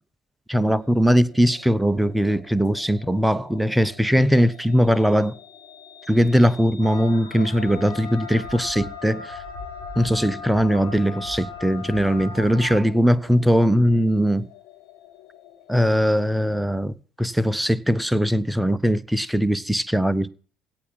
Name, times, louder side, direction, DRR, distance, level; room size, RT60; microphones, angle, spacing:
voice 1, 0.5-5.3 6.1-9.4 10.0-14.5 15.7-20.3, equal, ahead, 0.9 m, -20 dB
sound 1, 0.7-15.8, left 10 dB, 60° left, 1.7 m, -49 dB
sound 2, 6.8-12.8, left 4 dB, 85° left, 2.9 m, -37 dB
17.0 x 5.8 x 9.1 m
figure-of-eight pair, 55°, 0 cm